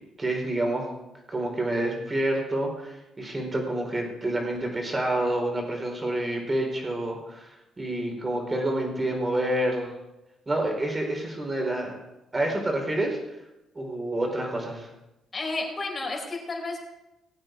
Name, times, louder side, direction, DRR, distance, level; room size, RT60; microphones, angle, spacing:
voice 1, 0.2-0.9 1.3-9.9 10.5-11.9 12.3-13.4 13.7-14.9, right 1 dB, 25° right, 2 dB, 4.4 m, -28 dB
voice 2, 15.3-16.8, left 3 dB, 35° left, -1 dB, 5.1 m, -31 dB
19.0 x 8.7 x 4.7 m, 0.94 s
cardioid pair, 90°, 0 cm